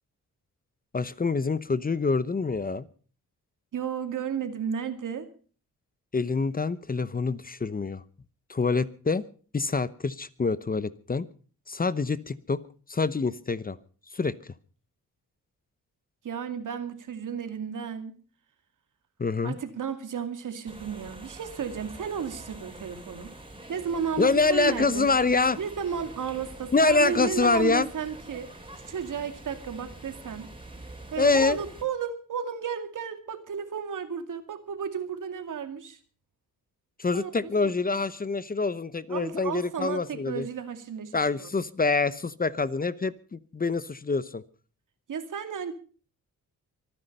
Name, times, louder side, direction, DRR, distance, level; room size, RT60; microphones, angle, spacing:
voice 1, 0.9-2.8 6.1-8.0 8.5-9.2 9.5-11.2 11.7-12.6 12.9-13.8 14.1-14.5 19.2-19.6 24.2-25.6 26.7-27.9 31.2-31.6 37.0-40.5 41.1-44.4, left 4 dB, 25° left, 16 dB, 0.9 m, -26 dB
voice 2, 3.7-5.3 16.2-18.2 19.4-23.3 23.7-25.1 25.6-28.5 28.9-30.5 31.1-36.0 37.1-37.7 39.1-41.5 45.1-45.7, right 7 dB, 70° right, 9 dB, 2.3 m, -33 dB
sound 1, 20.7-31.8, right 1 dB, 15° right, 4.3 m, -45 dB
24.5 x 10.0 x 5.4 m, 0.41 s
cardioid pair, 90°, 32 cm